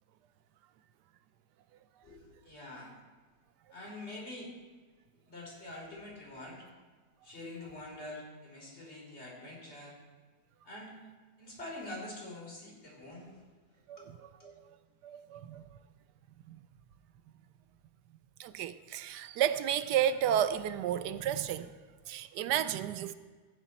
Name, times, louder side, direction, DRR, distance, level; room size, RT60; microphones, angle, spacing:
voice 1, 2.0-2.9 3.7-4.5 5.3-6.7 7.2-10.0 10.6-11.0 11.4-13.4 14.0-14.1 14.4-14.5, left 2 dB, 40° left, 3.8 m, -45 dB
voice 2, 13.9-14.8 15.0-15.7 16.5-16.6 18.4-21.7 22.1-23.1, right 10 dB, 85° right, 1.2 m, -32 dB
15.0 x 9.7 x 4.1 m
omnidirectional pair, 1.8 m